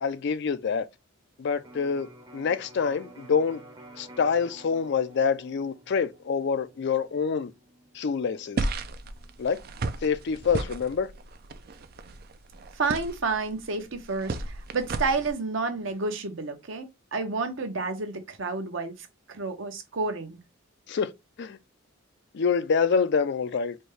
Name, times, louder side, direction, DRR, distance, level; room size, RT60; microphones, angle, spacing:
voice 1, 0.0-0.9 1.4-3.6 4.0-7.5 7.9-8.7 9.4-9.6 10.0-11.1 20.9-21.1 21.4-21.6 22.3-23.8, left 6 dB, 55° left, 0.4 m, -26 dB
Electric guitar, 1.6-9.4, right 1 dB, 20° right, 0.7 m, -51 dB
sound 1, 8.6-15.3, right 3 dB, 50° right, 0.4 m, -34 dB
voice 2, 12.7-20.4, right 4 dB, 65° right, 0.9 m, -30 dB
4.3 x 2.2 x 3.1 m
head